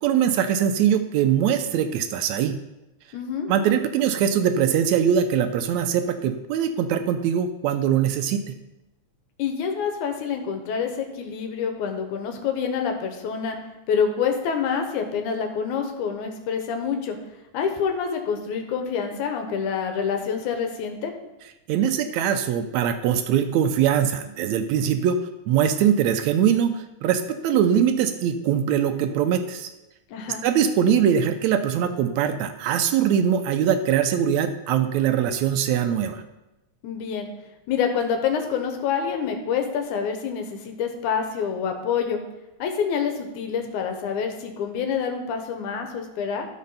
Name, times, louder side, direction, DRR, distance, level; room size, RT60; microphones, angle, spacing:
voice 1, 0.0-2.6 3.5-8.4 21.7-25.2 25.5-29.7 30.4-36.2, right 9 dB, 75° right, 9 dB, 1.9 m, -22 dB
voice 2, 3.1-3.5 9.4-13.6 13.9-17.2 17.5-21.1 30.1-30.4 36.8-37.3 37.7-42.2 42.6-46.5, left 6 dB, 90° left, 5 dB, 2.5 m, -27 dB
12.5 x 5.3 x 5.5 m, 0.97 s
omnidirectional pair, 3.4 m